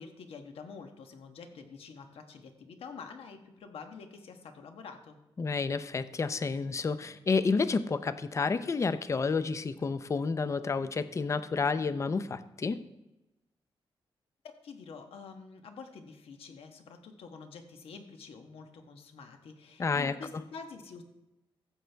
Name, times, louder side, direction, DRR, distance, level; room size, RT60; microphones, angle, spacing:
voice 1, 0.0-5.2 14.6-21.0, left 5 dB, 85° left, 5 dB, 1.3 m, -47 dB
voice 2, 5.4-12.8 19.8-20.1, left 4 dB, 30° left, 12 dB, 0.5 m, -30 dB
14.5 x 7.5 x 3.4 m, 0.96 s
wide cardioid pair, 135°, 10 cm